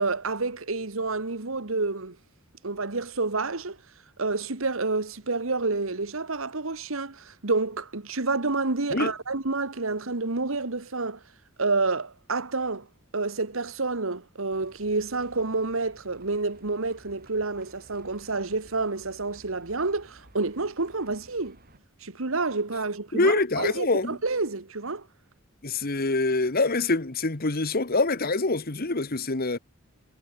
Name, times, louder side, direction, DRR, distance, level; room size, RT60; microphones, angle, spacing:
voice 1, 0.0-2.2 2.6-3.8 4.2-11.2 11.6-12.9 13.1-21.6 22.0-25.1, right 3 dB, 70° right, 1.5 m, -29 dB
Livestock farm animals working animals, 14.5-21.8, right 1 dB, 45° right, 6.9 m, -55 dB
voice 2, 23.1-24.2 25.6-29.6, left 3 dB, 45° left, 1.5 m, -25 dB
head